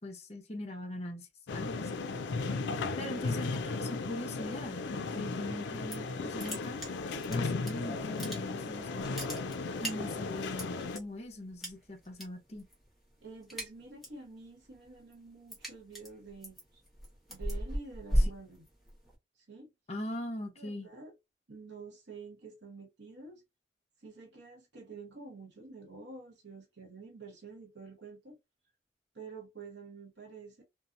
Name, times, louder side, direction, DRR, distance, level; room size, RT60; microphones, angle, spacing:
voice 1, 0.0-2.0 3.0-6.8 7.3-9.2 9.8-12.6 19.9-20.9, left 1 dB, 35° left, 0.6 m, -41 dB
sound 1, 1.5-11.0, left 4 dB, 85° left, 0.4 m, -36 dB
voice 2, 2.5-3.5 13.2-16.8 17.3-18.6 19.5-19.7 20.1-20.2 20.6-21.1 21.5-23.4 24.0-28.4 29.1-30.6, right 4 dB, 80° right, 1.0 m, -49 dB
sound 2, 5.6-6.1 6.4-7.7 8.0-8.7 9.0-11.0 11.6-12.2 12.5-12.9 13.2-14.2 14.6-19.1, equal, ahead, 0.8 m, -35 dB
2.7 x 2.0 x 2.5 m
head